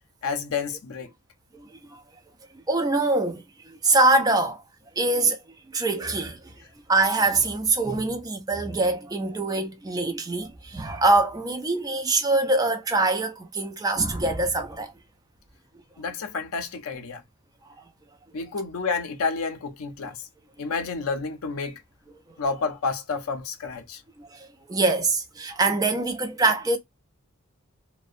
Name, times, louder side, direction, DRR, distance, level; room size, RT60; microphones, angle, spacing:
voice 1, 0.2-1.1 16.0-17.2 18.3-20.3 20.6-21.8 22.4-24.0, left 4 dB, 75° left, 0.5 m, -30 dB
voice 2, 1.5-2.0 2.7-4.6 5.0-5.4 5.7-6.4 6.9-14.9 24.2-26.8, right 2 dB, 15° right, 0.4 m, -24 dB
2.6 x 2.1 x 2.4 m
head